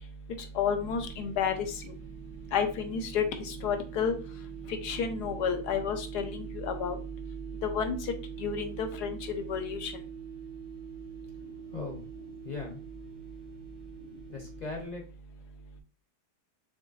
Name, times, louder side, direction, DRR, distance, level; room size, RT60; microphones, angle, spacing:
voice 1, 0.6-1.5 2.5-4.1 4.8-7.0 7.6-8.0 8.4-9.9, left 6 dB, 70° left, 7 dB, 1.3 m, -30 dB
sound 1, 0.8-14.9, right 8 dB, 90° right, 1.3 m, -45 dB
voice 2, 11.7-12.0 12.4-12.8 14.3-15.0, left 3 dB, 35° left, 1 dB, 0.8 m, -38 dB
5.1 x 3.6 x 2.5 m, 0.38 s
omnidirectional pair, 1.9 m